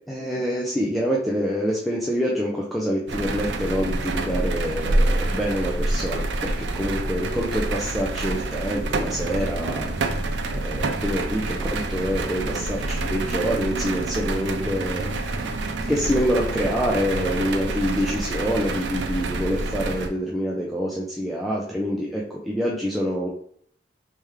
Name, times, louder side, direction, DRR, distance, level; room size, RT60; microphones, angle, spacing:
voice 1, 0.1-9.9 10.2-10.3 10.5-15.3 15.9-23.3, equal, ahead, -4 dB, 0.5 m, -26 dB
sound 1, 3.1-20.1, right 2 dB, 80° right, 0.5 m, -27 dB
3.3 x 3.3 x 3.2 m, 0.62 s
head